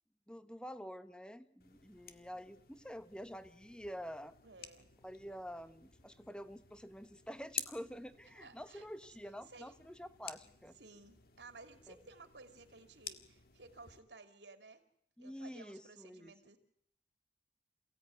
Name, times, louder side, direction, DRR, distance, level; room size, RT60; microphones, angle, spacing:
voice 1, 0.3-4.3 5.0-10.8 11.9-12.0 15.2-16.3, equal, 5° left, 11 dB, 1.1 m, -48 dB
sound 1, 1.6-14.0, left 9 dB, 55° left, 1.7 m, -52 dB
voice 2, 4.4-4.9 8.3-9.2 9.5-9.7 10.7-14.8 15.2-16.6, right 3 dB, 75° right, 7 dB, 3.0 m, -56 dB
28.0 x 17.0 x 9.5 m, 0.73 s
head